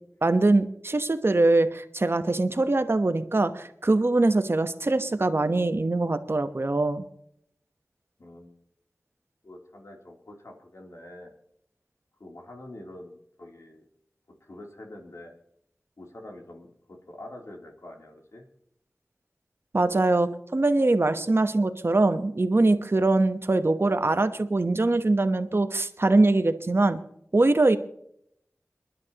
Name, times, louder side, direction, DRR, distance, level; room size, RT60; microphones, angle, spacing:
voice 1, 0.2-7.0 19.7-27.0 27.3-27.8, right 2 dB, 50° right, 10 dB, 1.1 m, -23 dB
voice 2, 8.2-8.5 9.4-11.3 12.2-13.8 14.4-15.3 16.0-18.5, left 1 dB, 75° left, 0 dB, 3.2 m, -45 dB
29.5 x 11.0 x 3.0 m, 0.73 s
wide cardioid pair, 40°, 5 cm